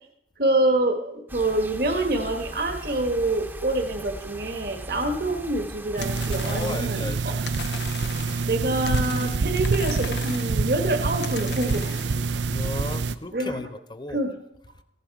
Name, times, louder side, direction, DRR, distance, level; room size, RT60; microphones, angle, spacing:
voice 1, 0.4-7.3 8.4-12.2 13.3-13.6 14.1-14.3, right 2 dB, 55° right, 4 dB, 1.4 m, -26 dB
sound 1, 1.3-6.8, right 1 dB, 10° right, 0.9 m, -39 dB
sound 2, 6.0-7.0 7.5-8.6 8.9-10.6 11.2-12.2, left 7 dB, 75° left, 0.7 m, -39 dB
sound 3, 6.0-13.1, right 4 dB, 90° right, 0.5 m, -26 dB
voice 2, 6.4-7.4 12.5-14.2, left 2 dB, 25° left, 11 dB, 0.7 m, -35 dB
15.5 x 11.0 x 4.7 m, 0.83 s
head